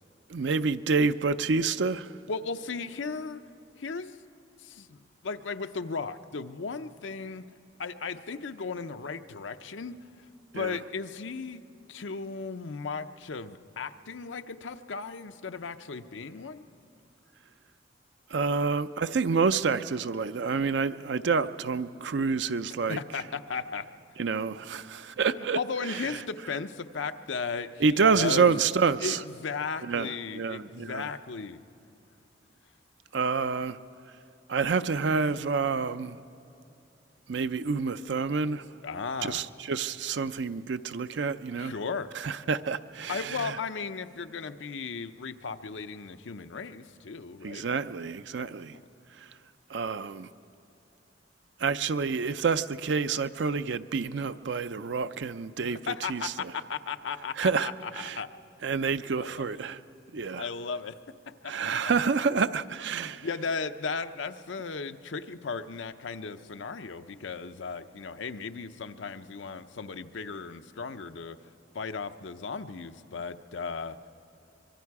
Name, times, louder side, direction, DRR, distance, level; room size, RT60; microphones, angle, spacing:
voice 1, 0.3-2.1 10.5-10.8 18.3-23.0 24.2-25.6 27.8-29.2 29.9-31.1 33.1-33.8 34.5-36.2 37.3-38.6 39.2-41.7 42.2-43.4 47.4-48.8 49.7-50.3 51.6-56.5 57.4-57.7 57.9-58.2 58.6-59.8 60.1-60.4 61.5-63.3, right 5 dB, 70° right, 0.5 m, -28 dB
voice 2, 2.3-3.4 3.8-4.2 4.6-7.4 7.8-10.3 10.5-11.6 11.9-16.7 22.9-23.9 25.4-28.5 29.0-31.6 38.8-39.4 41.6-42.1 43.1-47.7 48.7-48.9 55.6-58.3 59.2-59.6 60.4-61.0 61.3-61.5 61.8-61.9 63.2-71.4 71.7-74.0, left 5 dB, 90° left, 0.7 m, -36 dB
24.5 x 23.0 x 4.8 m
head